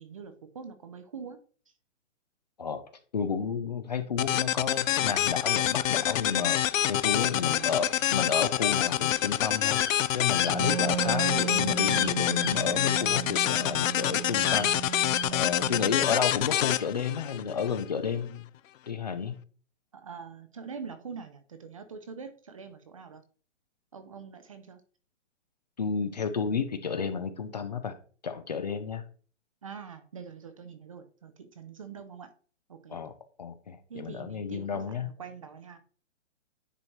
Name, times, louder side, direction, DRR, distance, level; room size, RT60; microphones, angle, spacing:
voice 1, 0.0-1.4 7.2-7.9 19.9-23.2 23.9-24.8 29.6-32.3 32.7-33.0 33.9-35.8, right 6 dB, 25° right, 9 dB, 0.5 m, -44 dB
voice 2, 3.1-6.6 6.9-15.0 15.3-18.4 18.9-19.4 25.8-28.0 28.2-29.0 32.9-33.1 33.4-35.1, left 6 dB, 35° left, 10 dB, 0.5 m, -31 dB
sound 1, 4.2-17.8, left 12 dB, 85° left, 0.5 m, -27 dB
sound 2, 9.7-9.9 10.3-10.5 11.9-12.1 12.4-12.5 14.3-15.2, left 7 dB, 60° left, 1.5 m, -33 dB
Wind instrument woodwind instrument, 10.4-16.1, right 9 dB, 85° right, 0.6 m, -35 dB
9.9 x 4.4 x 3.0 m, 0.41 s
hypercardioid pair, 165°, 38 cm